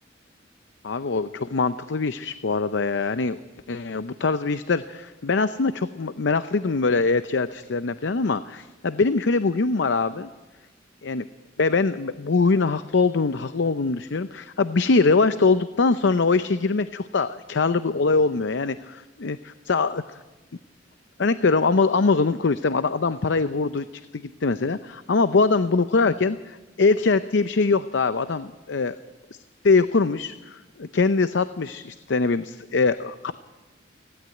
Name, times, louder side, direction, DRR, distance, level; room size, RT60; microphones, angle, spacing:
voice 1, 0.8-3.4 3.7-10.3 11.0-11.2 11.6-20.2 21.2-23.8 24.1-28.9 29.6-33.3, left 4 dB, 70° left, 12 dB, 0.6 m, -23 dB
17.0 x 16.5 x 9.4 m, 1.1 s
head